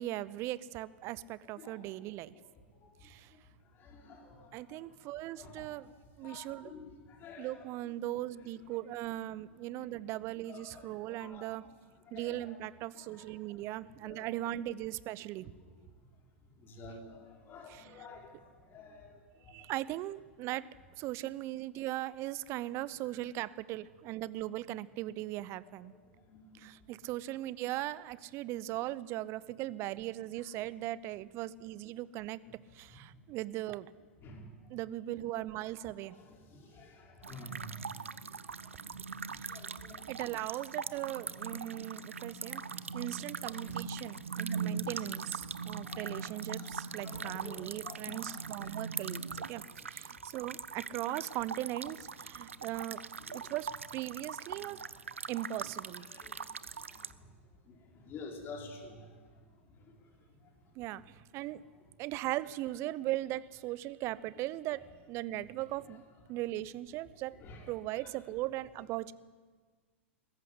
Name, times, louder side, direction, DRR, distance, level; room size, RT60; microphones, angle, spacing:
voice 1, 0.0-2.3 3.0-3.3 4.5-5.9 6.2-6.7 7.4-11.6 12.1-15.5 17.7-18.1 19.5-20.7 21.0-25.9 26.5-32.4 32.7-33.9 34.7-36.2 39.3-39.6 40.1-42.6 42.9-49.6 49.9-53.0 53.3-54.8 55.3-56.1 60.8-61.6 62.0-66.0 66.3-67.4 67.7-69.1, right 15 dB, 40° right, 19 dB, 0.8 m, -39 dB
voice 2, 3.7-4.8 5.4-5.9 6.2-7.6 10.5-11.7 12.1-12.6 13.0-13.3 14.0-14.3 15.4-15.5 16.6-19.7 26.1-26.7 33.1-33.2 34.2-34.7 36.1-38.3 38.9-40.0 42.1-42.7 43.6-43.7 45.5-45.6 45.8-46.8 47.0-48.7 53.0-53.4 54.5-55.2 55.6-55.7 56.1-56.5 56.8-57.3 57.7-59.2 59.6-59.9 60.4-60.5 67.4-67.7, left 2 dB, 30° left, 2 dB, 4.3 m, -51 dB
sound 1, 37.2-57.1, right 5 dB, 85° right, 0.7 m, -41 dB
21.0 x 14.5 x 9.7 m, 1.5 s
figure-of-eight pair, 95°, 7 cm